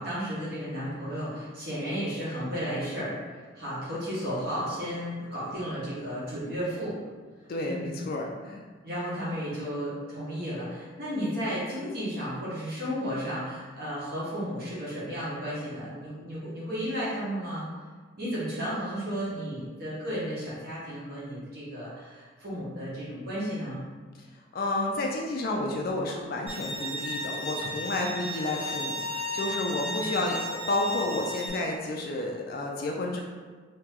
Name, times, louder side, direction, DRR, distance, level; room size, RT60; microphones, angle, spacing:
voice 1, 0.0-7.0 7.6-8.0 8.8-17.6 18.1-23.8 29.8-30.1, equal, 50° right, -9 dB, 1.3 m, -33 dB
voice 2, 7.5-8.6 24.5-33.2, left 2 dB, 45° left, 0 dB, 0.3 m, -31 dB
Bowed string instrument, 26.5-31.5, left 1 dB, 30° right, 1.0 m, -34 dB
3.1 x 2.8 x 3.5 m, 1.5 s
head